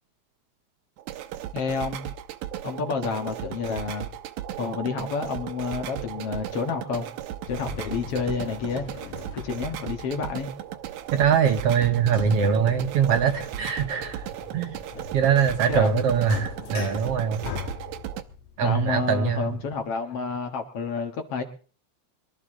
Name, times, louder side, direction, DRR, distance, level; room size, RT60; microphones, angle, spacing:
sound 1, 1.0-18.2, right 11 dB, 85° right, 2.3 m, -36 dB
voice 1, 1.5-2.0 2.6-4.1 4.6-7.1 7.5-8.8 9.4-10.5 15.0-15.1 15.7-16.0 18.6-21.4, left 5 dB, 55° left, 5 dB, 2.3 m, -29 dB
sound 2, 7.5-19.9, left 7 dB, 80° left, 2.7 m, -42 dB
voice 2, 11.1-14.2 14.5-14.7 15.1-17.4 18.6-19.6, right 7 dB, 65° right, 7 dB, 1.8 m, -22 dB
23.5 x 13.0 x 3.7 m, 0.41 s
omnidirectional pair, 3.3 m